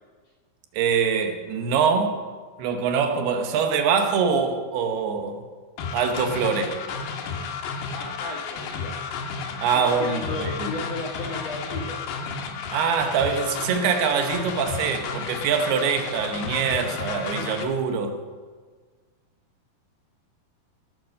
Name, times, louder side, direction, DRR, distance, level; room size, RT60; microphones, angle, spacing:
voice 1, 0.7-2.2 2.6-5.4 5.9-6.7 9.6-10.8 12.7-18.2, right 6 dB, 80° right, 6 dB, 3.0 m, -24 dB
sound 1, 5.8-17.6, left 5 dB, 85° left, 3.2 m, -32 dB
voice 2, 7.9-9.2 9.7-12.0, left 2 dB, 65° left, -1 dB, 1.7 m, -34 dB
17.0 x 7.8 x 6.5 m, 1.5 s
omnidirectional pair, 4.6 m